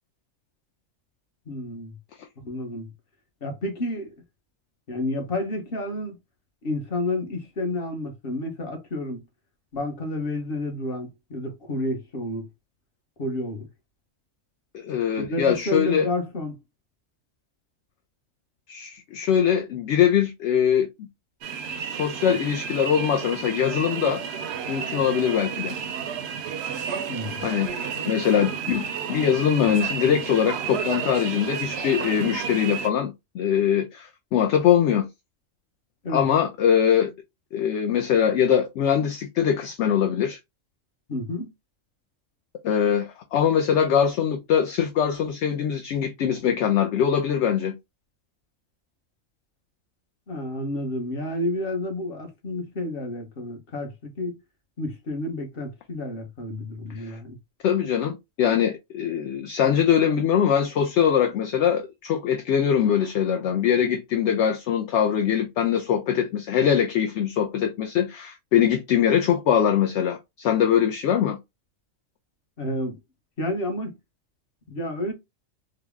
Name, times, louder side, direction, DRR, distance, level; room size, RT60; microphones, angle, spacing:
voice 1, 1.5-1.9 2.4-2.9 3.4-4.2 4.9-6.2 6.6-9.2 9.7-12.5 13.2-13.7 15.2-16.6 27.1-27.4 36.0-36.2 41.1-41.5 50.3-54.4 54.8-57.4 72.6-73.0 73.4-73.9 74.7-75.1, left 1 dB, 50° left, 1.2 m, -30 dB
voice 2, 14.7-16.1 18.7-21.1 21.8-24.2 24.7-25.8 27.4-27.7 28.0-35.1 36.1-37.1 37.5-40.4 42.6-47.7 57.0-57.2 57.6-71.4, left 8 dB, 65° left, 0.8 m, -22 dB
sound 1, 21.4-32.9, right 7 dB, 65° right, 0.7 m, -32 dB
3.9 x 2.0 x 3.5 m
omnidirectional pair, 1.4 m